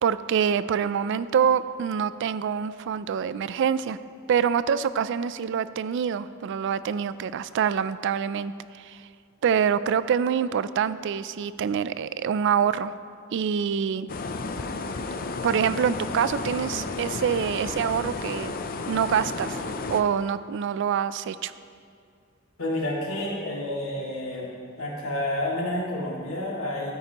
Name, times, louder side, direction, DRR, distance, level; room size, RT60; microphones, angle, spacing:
voice 1, 0.0-4.0 4.3-9.0 9.4-12.9 13.3-14.1 15.4-18.5 18.9-19.6 19.9-21.5, right 7 dB, 60° right, 15 dB, 0.3 m, -25 dB
sound 1, 14.1-20.0, left 3 dB, 45° left, 0.5 m, -32 dB
voice 2, 22.6-24.5 24.8-26.9, left 1 dB, 90° left, -4 dB, 2.2 m, -29 dB
13.0 x 9.5 x 2.9 m, 2.3 s
head